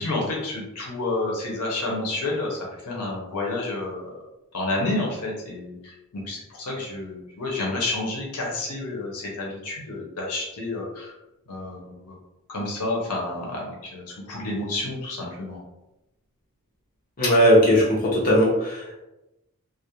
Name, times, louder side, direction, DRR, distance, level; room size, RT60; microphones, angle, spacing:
voice 1, 0.0-4.1 4.5-11.1 11.5-12.1 12.5-15.6, left 2 dB, 80° left, -2 dB, 0.6 m, -30 dB
voice 2, 17.2-19.0, equal, 40° left, -6 dB, 0.8 m, -18 dB
2.4 x 2.0 x 2.8 m, 0.96 s
head